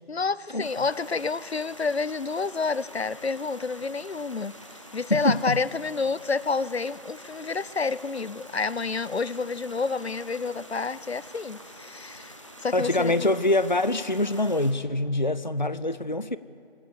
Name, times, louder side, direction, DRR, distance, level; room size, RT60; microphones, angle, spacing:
voice 1, 0.0-4.5 4.9-12.3 12.6-13.3, left 4 dB, 85° left, 20 dB, 0.7 m, -29 dB
sound 1, 0.6-14.7, equal, 30° left, 1.3 m, -47 dB
voice 2, 5.1-5.6 12.7-16.4, left 1 dB, 45° left, 15 dB, 0.5 m, -24 dB
22.0 x 17.5 x 8.4 m, 2.6 s
figure-of-eight pair, 175°, 31 cm